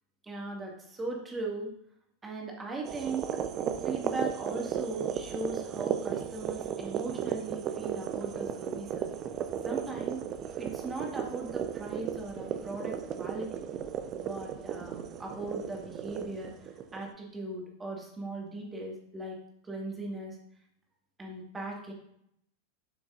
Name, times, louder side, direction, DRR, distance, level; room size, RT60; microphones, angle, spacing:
voice 1, 0.2-1.7 2.2-3.3 3.8-9.1 9.6-10.2 10.6-13.6 14.1-19.4 19.6-20.4 21.2-21.9, right 2 dB, 15° right, 0 dB, 1.9 m, -38 dB
sound 1, 2.8-17.1, right 8 dB, 30° right, 0.6 m, -35 dB
11.5 x 6.1 x 2.5 m, 0.73 s
figure-of-eight pair, 90°, 0 cm